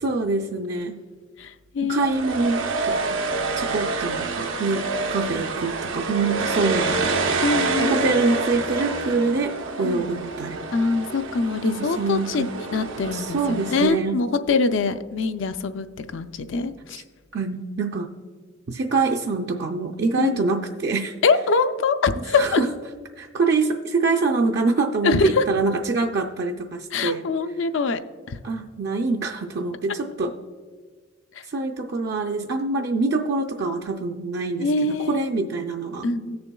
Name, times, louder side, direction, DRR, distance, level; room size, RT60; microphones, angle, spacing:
voice 1, 0.0-1.0 1.8-3.3 3.6-7.2 7.8-10.6 11.6-12.5 13.1-14.2 16.9-17.0 17.3-18.1 18.7-21.2 22.4-22.7 23.2-27.2 28.4-30.3 31.5-36.1, right 3 dB, 55° right, 3 dB, 0.5 m, -25 dB
voice 2, 1.4-2.1 7.4-8.1 9.8-10.0 10.7-17.0 20.2-20.4 21.2-22.6 25.0-25.4 26.9-28.0 28.3-28.4 31.3-31.5 34.6-35.3 36.0-36.4, left 4 dB, 70° left, 10 dB, 0.4 m, -24 dB
sound 1, 2.0-13.9, right 3 dB, 90° right, 0.8 m, -27 dB
17.0 x 6.8 x 2.3 m, 1.5 s
head